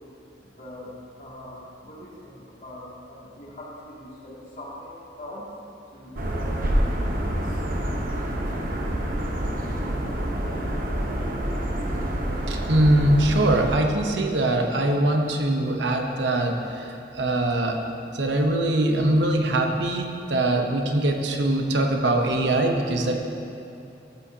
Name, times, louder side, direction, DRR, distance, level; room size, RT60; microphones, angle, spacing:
voice 1, 0.6-0.9 1.2-5.4 5.9-7.6 8.5-8.6 9.7-9.9, left 1 dB, 45° left, -7 dB, 2.4 m, -42 dB
sound 1, 6.2-13.7, right 1 dB, 50° right, 1.0 m, -27 dB
voice 2, 12.5-17.8 18.1-23.2, right 1 dB, 80° right, 3 dB, 0.9 m, -22 dB
14.5 x 8.6 x 2.8 m, 2.6 s
head